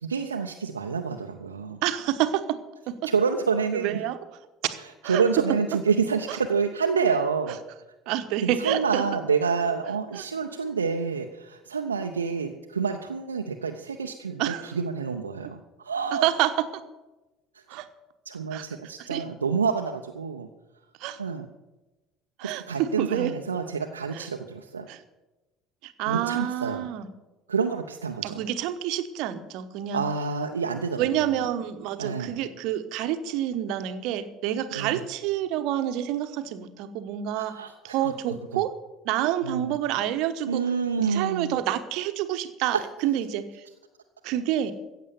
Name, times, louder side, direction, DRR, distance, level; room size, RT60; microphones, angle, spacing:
voice 1, 0.0-1.8 3.1-4.0 5.0-7.6 8.4-16.3 18.3-20.5 21.2-21.5 22.4-24.9 26.1-26.9 27.5-28.4 29.9-31.1 32.0-32.4 34.7-35.1 37.3-37.7 38.0-38.1 38.5-38.6 39.4-39.8 40.4-41.6, right 5 dB, 80° right, 3 dB, 0.7 m, -28 dB
voice 2, 1.8-2.6 2.9-3.0 3.7-4.2 5.0-5.2 6.3-6.4 8.1-9.0 10.1-10.2 14.4-14.7 16.1-16.7 17.7-17.9 18.5-18.7 19.0-19.2 21.0-21.2 22.4-23.3 24.1-24.3 24.9-25.0 25.8-27.1 28.2-30.0 31.0-37.6 37.8-38.7 39.0-40.6 41.0-43.6 44.2-44.7, right 11 dB, 60° right, 10 dB, 1.1 m, -28 dB
15.0 x 8.5 x 6.9 m, 1.1 s
figure-of-eight pair, 60°, 0 cm